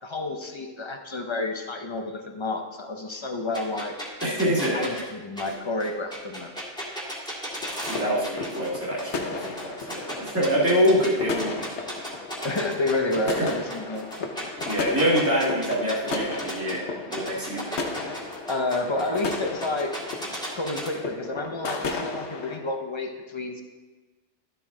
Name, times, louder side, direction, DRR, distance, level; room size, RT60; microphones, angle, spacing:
voice 1, 0.0-4.0 4.7-6.5 12.4-14.3 18.5-19.9 20.5-23.6, left 2 dB, 30° left, 4 dB, 0.6 m, -30 dB
sound 1, 3.5-8.7 9.0-11.1 11.4-16.7 17.1-20.9, equal, 5° left, 1.8 m, -35 dB
voice 2, 4.2-4.9 7.9-9.4 9.6-11.7 13.2-13.5 14.6-16.8 17.1-17.7, equal, 10° right, -6 dB, 1.7 m, -25 dB
sound 2, 7.5-22.6, left 3 dB, 75° left, 1.1 m, -35 dB
12.5 x 4.5 x 3.7 m, 1.3 s
omnidirectional pair, 1.2 m